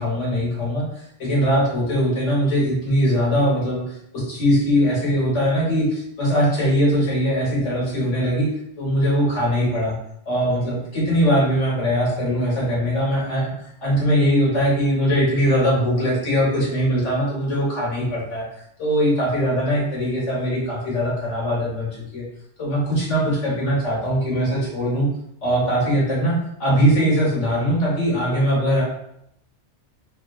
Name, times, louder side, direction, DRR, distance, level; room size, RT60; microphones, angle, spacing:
voice 1, 0.0-8.5 8.8-10.0 10.3-13.5 13.8-18.4 18.8-22.3 22.6-25.1 25.4-28.8, equal, 85° left, -4 dB, 1.7 m, -21 dB
3.8 x 3.3 x 2.4 m, 0.75 s
omnidirectional pair, 1.2 m